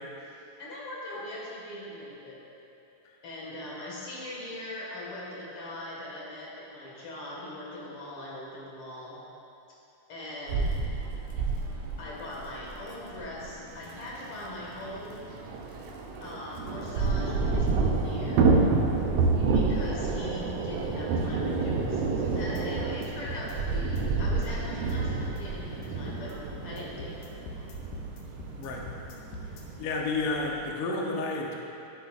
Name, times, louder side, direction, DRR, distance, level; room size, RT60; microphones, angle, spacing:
voice 1, 0.2-2.4 3.2-9.2 10.1-10.7 12.0-15.3 16.2-18.5 19.5-26.4 26.6-27.7 29.4-29.6, left 1 dB, 50° left, -5 dB, 2.4 m, -41 dB
sound 1, 10.5-27.3, right 4 dB, 90° right, 2.4 m, -34 dB
Thunder / Rain, 14.1-14.2 14.4-14.5 14.8-30.7, right 4 dB, 75° right, 1.6 m, -30 dB
sound 2, 22.3-29.6, left 2 dB, 85° left, 2.5 m, -42 dB
voice 2, 29.8-31.5, left 3 dB, 65° left, -1 dB, 1.4 m, -30 dB
13.5 x 8.0 x 2.5 m, 2.8 s
omnidirectional pair, 3.5 m